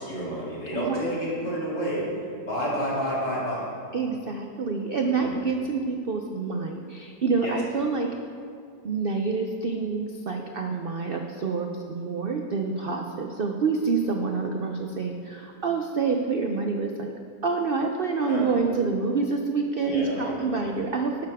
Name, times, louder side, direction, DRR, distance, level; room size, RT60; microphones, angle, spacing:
voice 1, 0.0-2.1 2.5-3.7 5.2-5.3 7.4-7.6 18.2-18.5 19.8-20.8, equal, 80° left, -7 dB, 3.7 m, -30 dB
voice 2, 0.7-1.1 3.9-8.1 8.8-17.1 17.4-21.3, right 4 dB, 75° right, 3 dB, 0.5 m, -27 dB
11.5 x 11.5 x 3.5 m, 2.4 s
omnidirectional pair, 1.8 m